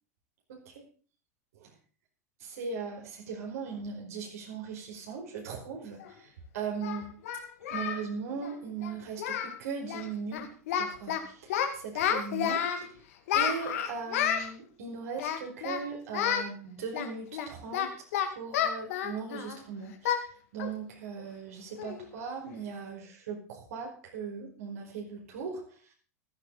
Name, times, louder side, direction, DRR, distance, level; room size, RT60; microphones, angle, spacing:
voice 1, 0.5-0.8 1.6-1.7 2.4-6.0 6.5-7.1 7.7-10.5 10.8-12.9 13.3-17.9 18.3-20.2 20.5-25.6, right 5 dB, 65° right, 0 dB, 5.1 m, -38 dB
Singing, 6.0-6.1 6.8-8.0 8.3-8.5 8.8-8.9 9.2-9.6 9.8-10.1 10.3-11.2 11.5-12.8 13.3-14.5 15.2-15.8 16.1-16.5 16.9-19.6 20.0-20.2 20.6-20.8 21.2-21.3 21.8-22.0, left 9 dB, 65° left, 2.2 m, -30 dB
15.5 x 12.0 x 4.1 m, 0.39 s
hypercardioid pair, 90°, 9 cm